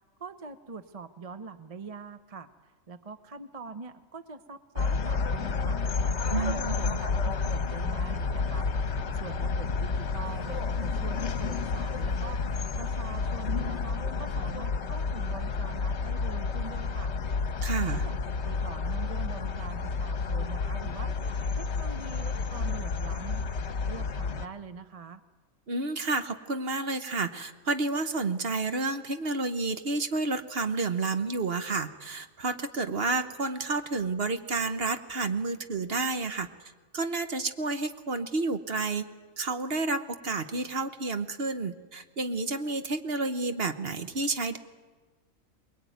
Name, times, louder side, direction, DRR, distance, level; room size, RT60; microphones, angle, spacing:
voice 1, 0.2-5.8 6.3-8.7 9.2-12.4 12.8-17.1 17.9-21.1 21.5-23.5 23.8-25.2, right 4 dB, 30° right, 11 dB, 0.8 m, -43 dB
sound 1, 4.8-24.5, left 4 dB, 60° left, 1.4 m, -30 dB
voice 2, 6.3-7.0 17.6-18.0 25.7-36.5 36.9-39.1 39.4-44.6, right 3 dB, 50° right, 9 dB, 1.3 m, -30 dB
sound 2, 8.0-14.0, left 2 dB, ahead, 4.2 m, -47 dB
23.5 x 21.0 x 9.3 m, 1.3 s
omnidirectional pair, 1.4 m